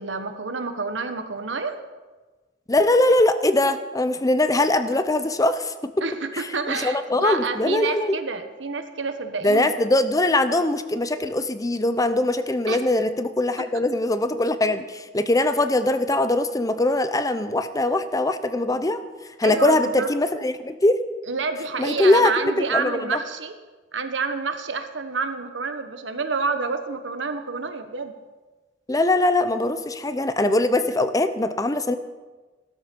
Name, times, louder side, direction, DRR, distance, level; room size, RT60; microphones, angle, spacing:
voice 1, 0.0-1.8 6.0-9.8 12.7-12.8 13.6-13.8 19.4-20.1 21.3-23.6 23.9-28.1, right 4 dB, 85° right, 8 dB, 1.3 m, -28 dB
voice 2, 2.7-6.1 6.3-8.2 9.4-19.0 19.4-21.0 21.8-22.3 22.6-23.2 28.9-32.0, left 2 dB, 20° left, 11 dB, 0.7 m, -22 dB
16.0 x 13.0 x 5.4 m, 1.3 s
head